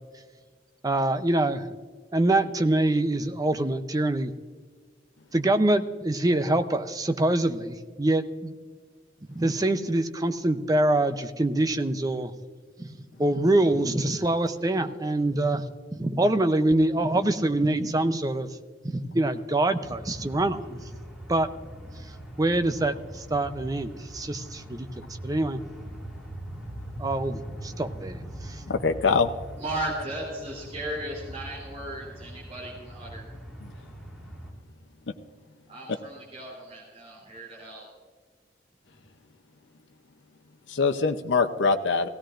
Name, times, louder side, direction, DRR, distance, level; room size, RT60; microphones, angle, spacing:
voice 1, 0.8-1.7 2.1-4.3 5.3-8.5 9.3-12.3 12.8-12.9 13.2-15.6 15.9-18.5 18.8-20.8 21.3-21.5 22.4-24.9 25.2-25.6 27.0-28.2 28.4-28.6, right 1 dB, 20° right, 9 dB, 0.6 m, -25 dB
sound 1, 19.8-34.5, right 1 dB, 5° right, 3.4 m, -41 dB
voice 2, 28.7-29.3 33.6-33.7 40.7-42.1, left 4 dB, 80° left, 5 dB, 0.7 m, -23 dB
voice 3, 29.6-33.3 35.7-37.9, right 1 dB, 35° right, -4 dB, 3.1 m, -36 dB
17.0 x 16.5 x 2.5 m, 1.6 s
head